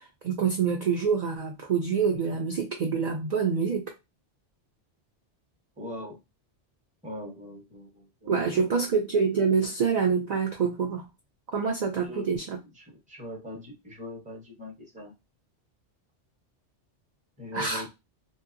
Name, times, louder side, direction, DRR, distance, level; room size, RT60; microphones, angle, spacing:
voice 1, 0.0-3.9 8.3-11.1 11.5-12.6 17.5-17.8, right 6 dB, 60° right, 0.4 m, -26 dB
voice 2, 5.8-6.2 7.0-8.7 12.0-12.3 12.8-15.1 17.4-17.9, left 1 dB, 10° right, 0.6 m, -41 dB
2.7 x 2.2 x 2.5 m
omnidirectional pair, 1.2 m